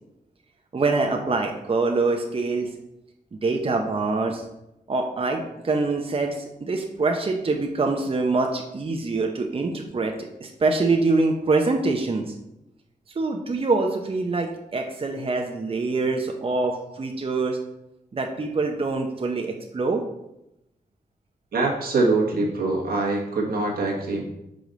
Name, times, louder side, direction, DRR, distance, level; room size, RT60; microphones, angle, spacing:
voice 1, 0.7-2.7 3.4-4.4 4.9-12.3 13.2-17.6 18.1-20.0, right 3 dB, 40° right, 2 dB, 0.7 m, -25 dB
voice 2, 21.5-24.2, right 3 dB, 80° right, -1 dB, 1.4 m, -23 dB
5.0 x 5.0 x 3.9 m, 0.86 s
cardioid pair, 55°, 15 cm